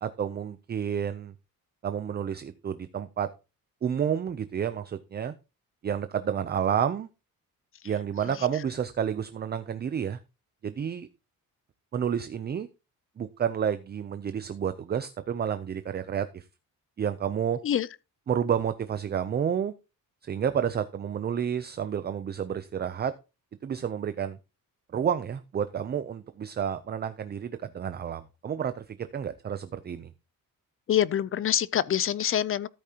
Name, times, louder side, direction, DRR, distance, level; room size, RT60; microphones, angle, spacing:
voice 1, 0.0-1.3 1.8-3.3 3.8-5.3 5.8-7.1 7.8-10.2 10.6-11.1 11.9-12.7 13.2-16.4 17.0-17.6 18.3-19.7 20.2-23.1 23.6-24.4 24.9-30.1, right 8 dB, 30° right, 0.5 m, -30 dB
voice 2, 30.9-32.7, left 10 dB, 40° left, 0.4 m, -25 dB
13.5 x 8.4 x 2.8 m
wide cardioid pair, 180°, 35 cm